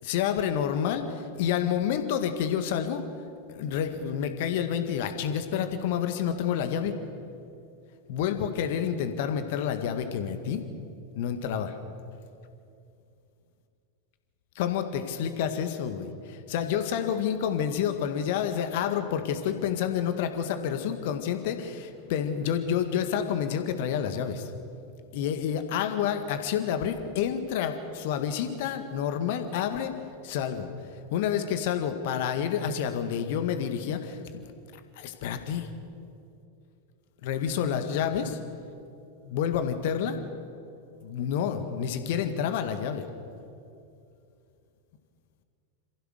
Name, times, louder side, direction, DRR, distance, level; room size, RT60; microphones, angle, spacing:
voice 1, 0.0-3.0 3.5-6.9 8.1-10.6 11.2-11.7 14.6-24.5 25.1-29.9 30.2-30.7 31.1-34.2 35.0-35.7 37.2-38.4 39.2-40.2 41.0-43.1, left 8 dB, 50° left, 8 dB, 1.9 m, -29 dB
27.5 x 15.5 x 6.7 m, 2.5 s
figure-of-eight pair, 90°, 0 cm